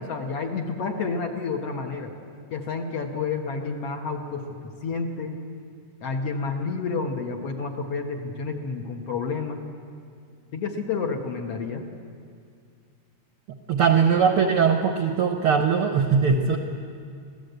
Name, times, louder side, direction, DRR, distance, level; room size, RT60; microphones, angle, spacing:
voice 1, 0.0-2.1 2.5-5.3 6.0-9.6 10.5-11.9, left 4 dB, 55° left, 2 dB, 2.0 m, -30 dB
voice 2, 13.5-16.6, right 6 dB, 65° right, 4 dB, 1.3 m, -21 dB
25.5 x 16.0 x 8.1 m, 2.3 s
omnidirectional pair, 3.8 m